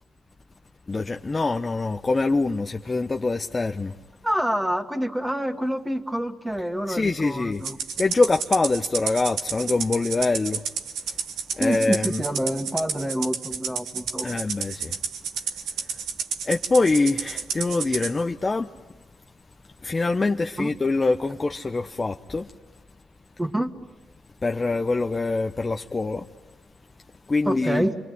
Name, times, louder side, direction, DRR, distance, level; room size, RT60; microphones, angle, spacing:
voice 1, 0.9-3.9 6.9-7.6 8.0-10.6 11.5-12.2 14.2-15.0 15.9-16.0 16.4-18.7 19.8-22.5 24.4-26.3 27.3-27.8, left 3 dB, 30° left, 0.8 m, -24 dB
voice 2, 4.2-7.8 11.6-14.4 20.6-20.7 23.4-23.7 27.4-28.0, equal, 10° right, 2.1 m, -27 dB
Rattle (instrument), 7.6-18.1, right 6 dB, 90° right, 1.7 m, -31 dB
27.5 x 23.0 x 9.5 m
cardioid pair, 75°, 0 cm